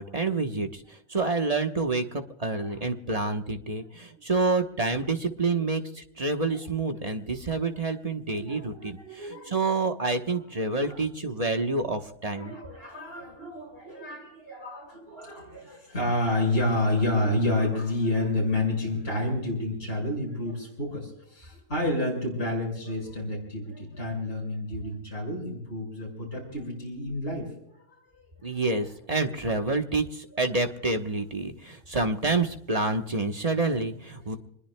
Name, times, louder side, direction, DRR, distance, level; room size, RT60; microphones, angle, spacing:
voice 1, 0.0-12.5 28.4-34.4, right 3 dB, 30° right, 5 dB, 1.1 m, -28 dB
voice 2, 8.3-9.5 10.3-10.4 10.8-11.0 12.4-27.5 28.1-28.3, left 1 dB, 50° left, -3 dB, 6.2 m, -30 dB
26.5 x 21.0 x 2.2 m, 0.76 s
omnidirectional pair, 1.3 m